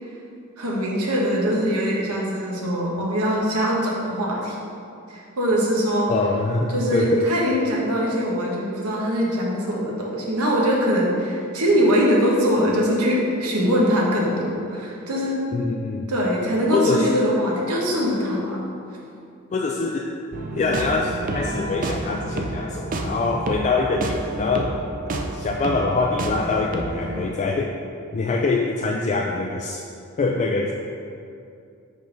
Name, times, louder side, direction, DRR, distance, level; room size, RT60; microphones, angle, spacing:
voice 1, 0.6-4.6 5.1-6.1 6.7-15.4 16.1-18.6, equal, 90° right, -3 dB, 1.2 m, -22 dB
voice 2, 6.1-7.3 15.5-16.1 16.7-17.2 19.5-20.1 20.5-24.7 25.1-27.7 28.1-29.8 30.2-30.7, left 3 dB, 35° left, 0 dB, 0.3 m, -24 dB
sound 1, 20.3-27.3, right 2 dB, 40° right, 0.5 m, -29 dB
5.4 x 3.8 x 5.1 m, 2.5 s
head